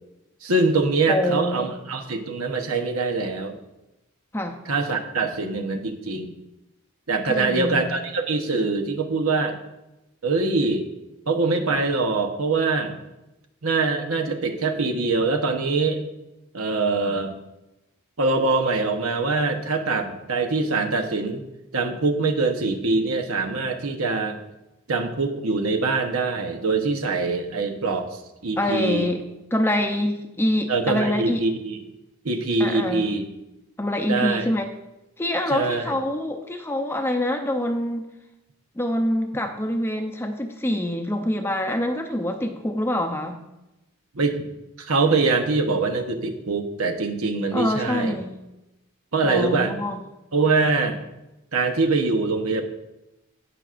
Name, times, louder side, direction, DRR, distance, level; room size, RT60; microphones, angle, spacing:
voice 1, 0.4-3.6 4.6-6.3 7.1-9.5 10.2-10.9 11.3-12.9 13.6-16.0 16.5-17.3 18.2-21.4 21.7-24.4 24.9-29.1 30.7-31.8 32.2-33.2 34.1-34.4 35.5-35.9 44.1-44.4 44.8-48.1 49.1-49.7 50.3-51.0 51.5-52.6, right 3 dB, 80° right, 5 dB, 1.0 m, -23 dB
voice 2, 1.1-1.8 4.3-4.6 7.3-8.0 28.6-29.2 29.5-31.4 32.6-33.1 33.8-34.7 35.2-38.0 38.8-43.4 47.5-48.4 49.2-50.0, left 1 dB, 10° left, 5 dB, 0.6 m, -25 dB
17.5 x 6.0 x 2.5 m, 0.96 s
head